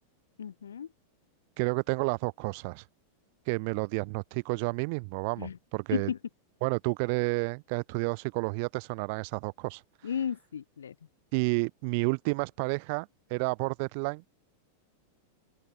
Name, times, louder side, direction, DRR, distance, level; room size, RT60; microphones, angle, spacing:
voice 1, 0.4-0.9 5.4-5.5 5.9-6.2 10.0-10.9, left 8 dB, 65° left, 0.8 m, -33 dB
voice 2, 1.6-2.8 3.5-6.1 6.6-9.8 11.3-14.2, right 32 dB, 45° right, 0.3 m, -30 dB
open air
figure-of-eight pair, 90°, 0 cm